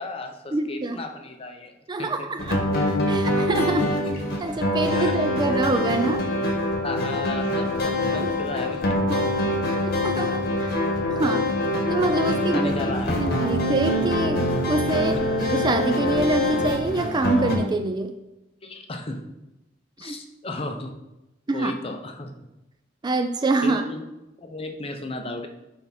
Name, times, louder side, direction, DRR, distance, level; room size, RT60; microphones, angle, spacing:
voice 1, 0.0-1.7 2.0-2.3 3.4-3.5 3.8-3.9 4.9-5.2 6.8-9.0 12.2-13.2 15.1-15.2 18.6-19.2 20.0-20.9 21.5-22.3 23.6-24.0 24.4-25.5, left 2 dB, 30° left, 4 dB, 0.8 m, -34 dB
voice 2, 0.5-1.0 1.9-2.6 3.1-3.8 4.4-6.2 9.1-9.3 9.7-10.8 11.1-11.4 11.9-12.7 13.0-18.1 20.0-20.2 21.5-21.7 23.0-23.8, right 2 dB, 25° right, 7 dB, 0.4 m, -25 dB
sound 1, 2.4-17.6, left 1 dB, 55° left, 1.3 m, -24 dB
10.5 x 3.5 x 4.2 m, 0.96 s
head